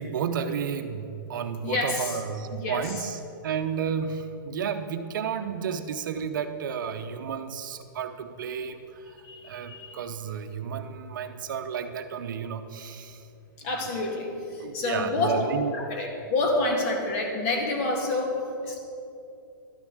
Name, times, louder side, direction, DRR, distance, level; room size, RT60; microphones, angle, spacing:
voice 1, 0.0-9.2 9.4-13.3 14.6-16.0, right 7 dB, 65° right, 8 dB, 0.7 m, -32 dB
voice 2, 1.6-2.2 2.5-2.9 9.2-10.0 13.6-15.4 15.7-18.8, left 2 dB, 40° left, 1 dB, 2.0 m, -28 dB
11.5 x 7.0 x 6.3 m, 2.7 s
hypercardioid pair, 150°, 12 cm